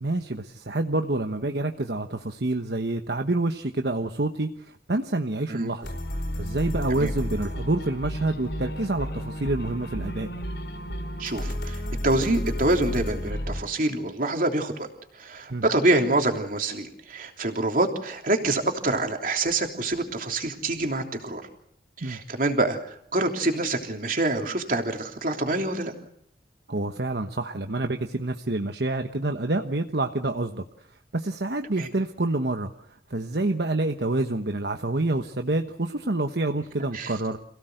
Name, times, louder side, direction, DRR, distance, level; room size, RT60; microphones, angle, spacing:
voice 1, 0.0-6.0 6.4-10.3 15.5-15.6 22.0-22.2 26.7-30.6 31.1-32.7 33.1-37.4, right 2 dB, 65° right, 5 dB, 1.2 m, -27 dB
sound 1, 5.8-13.6, equal, 75° left, 4.8 m, -32 dB
voice 2, 11.2-14.9 15.1-21.4 22.0-25.9 31.8-31.9 36.9-37.2, right 2 dB, 50° right, 3 dB, 3.3 m, -26 dB
28.5 x 17.0 x 7.9 m, 0.72 s
head